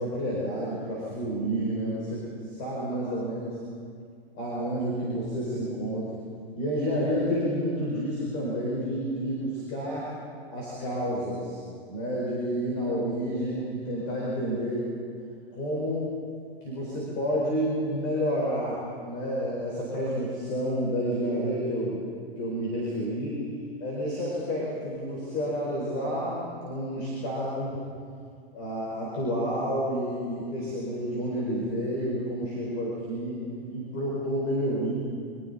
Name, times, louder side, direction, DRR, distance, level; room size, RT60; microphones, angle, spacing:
voice 1, 0.0-3.6 4.3-6.2 6.5-10.1 10.5-11.6 11.9-14.8 15.5-16.1 16.6-22.0 22.4-23.4 23.8-27.8 28.5-33.4 33.7-34.9, equal, 25° left, -5 dB, 4.6 m, -30 dB
28.5 x 24.5 x 4.1 m, 2.2 s
hypercardioid pair, 175°, 31 cm